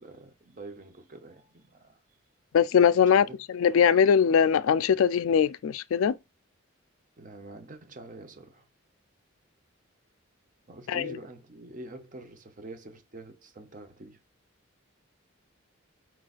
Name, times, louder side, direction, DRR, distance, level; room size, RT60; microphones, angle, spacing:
voice 1, 0.0-2.0 3.1-3.4 7.2-8.7 10.7-14.2, right 2 dB, 40° right, 0.8 m, -46 dB
voice 2, 2.5-6.2 10.9-11.2, left 7 dB, 70° left, 0.3 m, -22 dB
4.5 x 3.9 x 2.4 m
head